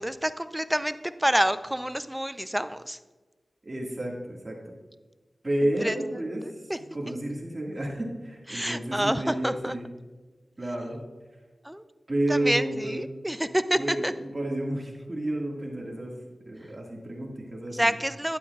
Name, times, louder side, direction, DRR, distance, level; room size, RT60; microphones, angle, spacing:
voice 1, 0.0-3.0 5.8-6.0 6.7-6.8 8.5-9.8 11.6-11.8 12.3-14.1 17.7-18.4, equal, 10° right, 12 dB, 0.5 m, -27 dB
voice 2, 3.7-4.6 5.4-6.5 6.8-9.9 10.6-11.0 12.1-13.0 13.7-16.2 16.5-18.0, right 1 dB, 40° right, -2 dB, 1.9 m, -31 dB
12.0 x 9.2 x 2.4 m, 1.3 s
cardioid pair, 45°, 0 cm